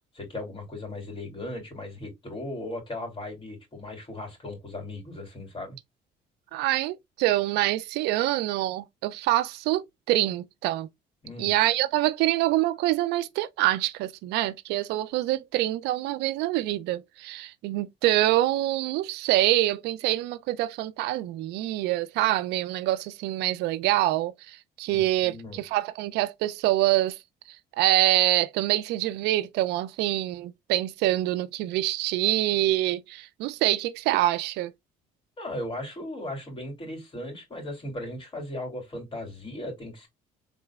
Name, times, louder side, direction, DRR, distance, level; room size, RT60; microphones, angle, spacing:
voice 1, 0.1-5.8 11.2-11.5 24.9-25.6 35.4-40.1, left 1 dB, 30° left, 3.1 m, -37 dB
voice 2, 6.5-10.9 11.4-27.2 27.8-34.7, right 15 dB, 85° right, 0.4 m, -25 dB
4.0 x 3.6 x 2.3 m
cardioid pair, 110°, 17 cm